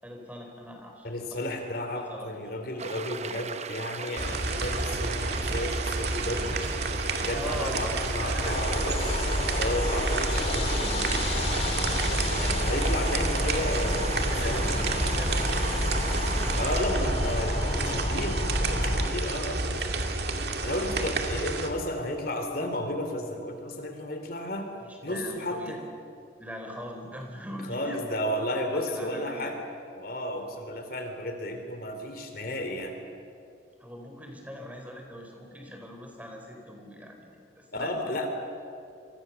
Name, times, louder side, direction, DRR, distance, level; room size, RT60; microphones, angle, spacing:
voice 1, 0.0-1.5 2.1-2.4 7.3-8.9 14.3-16.4 17.5-18.1 24.8-25.8 26.4-28.0 28.7-29.5 33.8-38.1, equal, 10° right, 2 dB, 3.9 m, -42 dB
voice 2, 1.0-6.7 7.2-9.2 9.5-11.3 12.1-14.7 16.5-20.1 20.6-24.7 25.0-25.8 27.6-29.6 30.0-32.9 37.7-38.3, left 1 dB, 50° left, 5 dB, 3.0 m, -33 dB
sound 1, 2.8-16.8, right 5 dB, 35° right, 0.7 m, -37 dB
sound 2, 4.2-21.7, right 2 dB, 55° right, 2.3 m, -30 dB
sound 3, 8.4-19.1, left 1 dB, 30° left, 2.2 m, -29 dB
28.5 x 24.5 x 7.0 m, 2.5 s
head